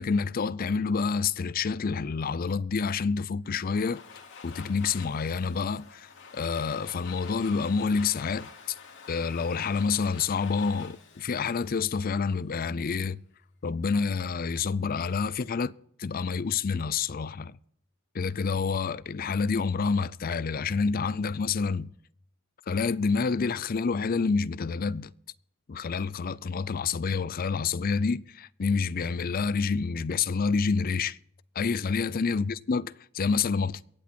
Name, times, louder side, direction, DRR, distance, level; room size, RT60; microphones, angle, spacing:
voice 1, 0.0-4.0 4.4-8.8 9.1-13.2 13.6-15.7 16.0-17.6 18.1-21.9 22.7-25.1 25.7-31.2 31.6-33.8, left 5 dB, 45° left, 0.4 m, -28 dB
Domestic sounds home sounds, 3.4-12.4, left 5 dB, 60° left, 2.4 m, -48 dB
23.5 x 8.3 x 4.4 m
head